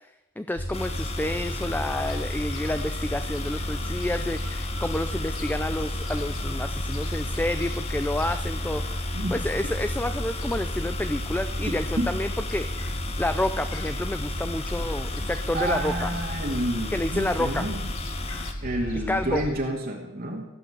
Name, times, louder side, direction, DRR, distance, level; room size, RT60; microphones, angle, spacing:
voice 1, 0.4-9.1 9.3-12.7 13.2-16.1 16.9-17.6 18.9-19.4, left 1 dB, 10° left, 9 dB, 0.5 m, -29 dB
Gull seagull, 0.6-19.5, equal, 75° left, 2.3 m, -32 dB
sound 1, 0.7-18.5, left 3 dB, 30° left, 1.0 m, -36 dB
voice 2, 15.5-17.9 18.6-20.5, right 1 dB, 45° right, 0 dB, 2.2 m, -29 dB
16.0 x 7.8 x 7.9 m, 0.94 s
head